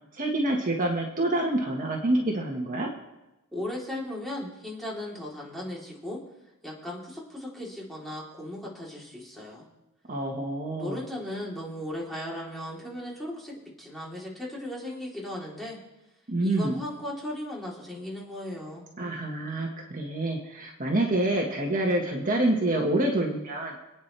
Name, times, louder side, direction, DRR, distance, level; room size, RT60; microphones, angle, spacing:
voice 1, 0.1-2.9 10.1-11.0 16.3-16.8 19.0-23.7, right 1 dB, 40° right, 0 dB, 1.7 m, -27 dB
voice 2, 3.5-6.2 6.6-9.7 10.8-15.8 16.4-18.8, left 1 dB, ahead, -5 dB, 3.6 m, -37 dB
27.0 x 9.3 x 3.4 m, 0.98 s
head